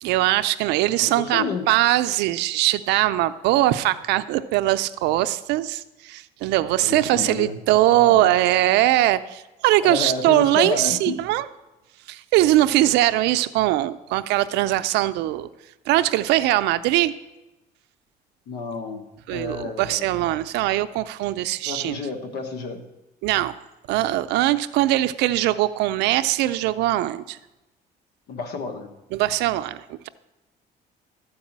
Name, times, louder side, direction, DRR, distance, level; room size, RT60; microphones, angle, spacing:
voice 1, 0.0-11.5 12.1-15.5 15.9-17.1 19.3-22.0 23.2-23.5 23.9-27.4 29.1-30.1, right 15 dB, 85° right, 12 dB, 0.4 m, -21 dB
voice 2, 1.0-1.7 6.8-8.3 9.8-11.2 18.5-19.0 19.3-20.1 21.6-22.8 28.3-28.9, left 4 dB, 75° left, 6 dB, 1.3 m, -30 dB
13.0 x 4.8 x 7.3 m, 0.99 s
cardioid pair, 110°, 17 cm